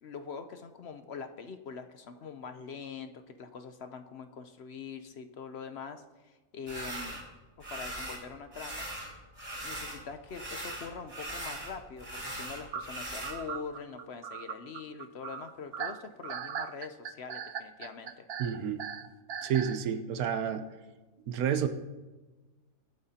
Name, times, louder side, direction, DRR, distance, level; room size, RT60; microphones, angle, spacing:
voice 1, 0.0-7.2 7.7-8.9 9.6-18.3, left 5 dB, 55° left, 8 dB, 0.8 m, -43 dB
sound 1, 6.7-7.2 7.6-8.2 8.5-10.0 10.3-13.4, right 1 dB, 25° right, 4.9 m, -40 dB
sound 2, 12.7-19.8, right 8 dB, 60° right, 0.7 m, -39 dB
voice 2, 18.4-18.8 19.4-20.7 21.3-21.7, right 8 dB, 90° right, 9 dB, 1.2 m, -30 dB
23.0 x 8.8 x 2.8 m, 1.2 s
omnidirectional pair, 1.5 m